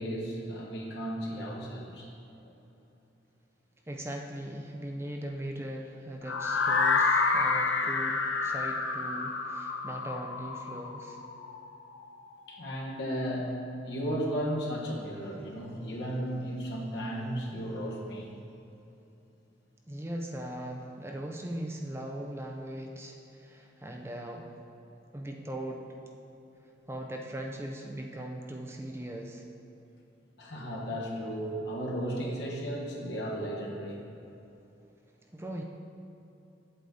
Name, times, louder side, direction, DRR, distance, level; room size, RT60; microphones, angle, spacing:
voice 1, 0.0-2.1 2.4-2.5 12.5-13.6 13.8-18.3 30.4-34.0, equal, 70° left, -2 dB, 1.5 m, -34 dB
voice 2, 3.9-11.2 19.9-24.5 25.1-25.8 26.9-29.4 35.3-35.6, right 1 dB, 15° right, 1 dB, 0.5 m, -39 dB
sound 1, 6.3-12.2, left 4 dB, 85° left, 0.7 m, -29 dB
8.0 x 8.0 x 4.0 m, 2.9 s
head